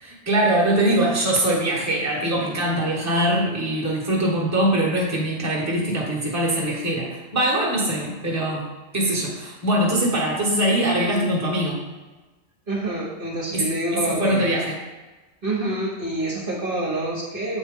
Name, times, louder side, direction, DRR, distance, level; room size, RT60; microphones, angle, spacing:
voice 1, 0.0-8.6 8.9-11.8 13.5-14.8, right 1 dB, 15° right, -4 dB, 1.2 m, -22 dB
voice 2, 12.7-14.5 15.4-17.6, right 1 dB, 45° right, -4 dB, 1.2 m, -27 dB
7.4 x 4.4 x 3.6 m, 1.2 s
omnidirectional pair, 1.3 m